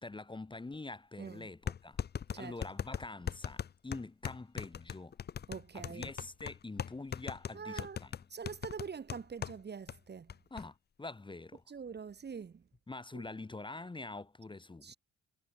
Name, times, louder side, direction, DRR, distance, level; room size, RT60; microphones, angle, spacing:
voice 1, 0.0-2.0 2.4-5.2 5.7-8.2 10.5-11.6 12.9-15.0, left 2 dB, 15° left, 1.2 m, -45 dB
sound 1, 0.7-0.8 1.7-9.6 9.9-10.0 10.3-10.6, left 8 dB, 35° left, 0.6 m, -39 dB
voice 2, 5.5-6.1 7.5-8.0 8.3-10.3 11.7-12.5 13.1-13.2 14.8-15.0, right 6 dB, 35° right, 1.2 m, -44 dB
cardioid pair, 90°, 30 cm